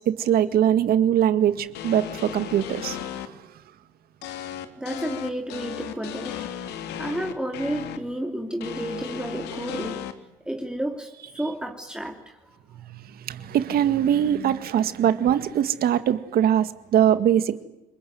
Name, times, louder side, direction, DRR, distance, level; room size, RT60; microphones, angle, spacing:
voice 1, 0.0-3.3 12.7-17.7, right 10 dB, 65° right, 12 dB, 2.0 m, -22 dB
sound 1, 1.7-3.3 4.2-8.0 8.6-10.1, left 10 dB, 85° left, 2.8 m, -35 dB
voice 2, 4.8-6.7 7.0-10.1 10.4-12.4 12.7-12.8, right 1 dB, 5° right, 3 dB, 2.8 m, -31 dB
29.5 x 21.0 x 9.5 m, 0.96 s
cardioid pair, 110°, 17 cm